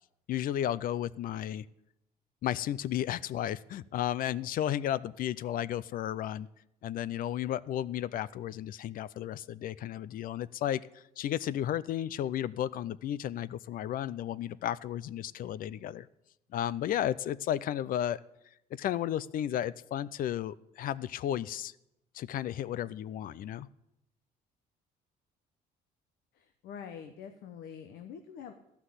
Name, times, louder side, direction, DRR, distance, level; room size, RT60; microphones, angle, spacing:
voice 1, 0.3-1.6 2.4-6.5 6.8-16.1 16.5-18.2 18.7-21.7 22.1-23.7, left 11 dB, 55° left, 19 dB, 0.4 m, -33 dB
voice 2, 26.3-28.5, left 7 dB, 75° left, 6 dB, 0.9 m, -45 dB
13.0 x 5.9 x 8.1 m, 0.85 s
cardioid pair, 110°, 17 cm